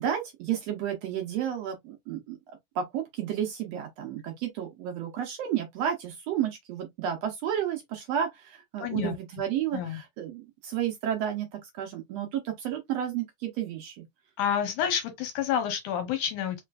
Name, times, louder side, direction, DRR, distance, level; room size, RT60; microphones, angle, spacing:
voice 1, 0.0-2.4 2.7-14.1, right 9 dB, 80° right, 1.5 m, -32 dB
voice 2, 8.8-9.2 9.7-10.0 14.4-16.6, left 8 dB, 75° left, 2.1 m, -29 dB
4.9 x 3.2 x 2.3 m
omnidirectional pair, 3.9 m